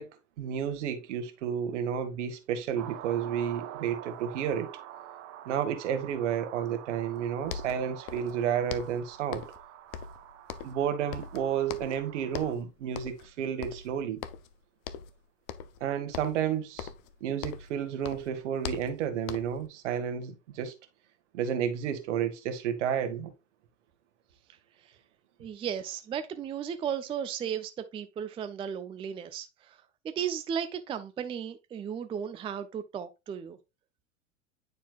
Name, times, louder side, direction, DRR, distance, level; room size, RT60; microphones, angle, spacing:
voice 1, 0.0-4.8 5.4-9.4 10.6-14.2 15.8-16.9 17.2-20.7 21.3-23.3, right 8 dB, 65° right, 1.4 m, -31 dB
sound 1, 2.8-12.5, right 11 dB, 40° right, 0.8 m, -46 dB
sound 2, 7.2-7.3 7.4-8.4 8.7-9.6 9.9-10.9 11.1-12.0 12.3-12.6 12.9-13.3 13.6-14.5 14.8-15.2 15.5-15.8 16.1-17.8 18.0-19.7, left 8 dB, 45° left, 0.7 m, -41 dB
voice 2, 25.4-29.8 30.0-33.6, right 8 dB, 15° right, 0.4 m, -35 dB
9.4 x 4.5 x 2.3 m
hypercardioid pair, 90°, 38 cm